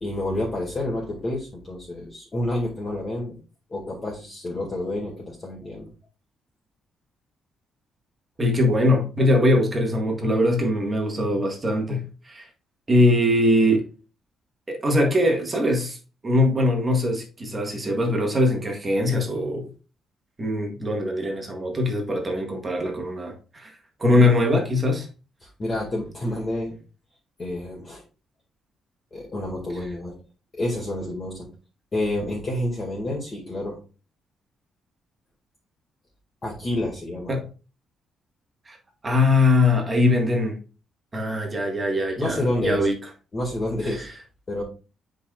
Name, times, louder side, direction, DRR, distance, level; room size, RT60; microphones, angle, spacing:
voice 1, 0.0-3.4 3.7-5.9 25.6-26.7 27.4-28.0 29.1-30.1 30.5-31.5 31.9-33.8 36.4-37.3 42.2-42.9 43.3-44.1 44.5-44.6, left 1 dB, 25° left, 2.1 m, -29 dB
voice 2, 8.4-12.5 12.9-13.8 14.7-16.0 16.2-19.7 20.4-23.7 24.0-25.1 37.3-37.5 38.7-38.8 39.0-40.6 41.1-42.9 43.8-44.1, left 1 dB, 20° right, 1.7 m, -22 dB
8.5 x 5.2 x 2.4 m
cardioid pair, 150°, 0 cm